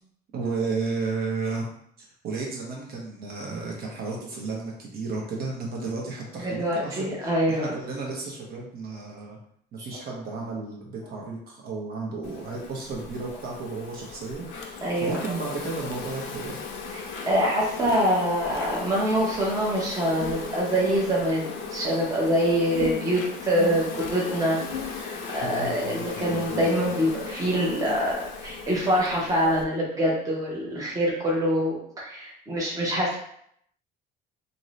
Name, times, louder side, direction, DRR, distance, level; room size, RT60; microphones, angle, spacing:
voice 1, 0.3-1.6 2.0-9.4 9.7-16.6 25.4-25.8 27.8-28.0, right 3 dB, 50° right, -2 dB, 0.8 m, -33 dB
voice 2, 6.4-7.7 9.8-9.9 14.8-15.2 17.3-33.2, equal, 20° right, -4 dB, 0.7 m, -25 dB
Insect, 12.2-29.6, left 5 dB, 75° left, 0.5 m, -36 dB
2.6 x 2.6 x 3.0 m, 0.68 s
cardioid pair, 160°, 20 cm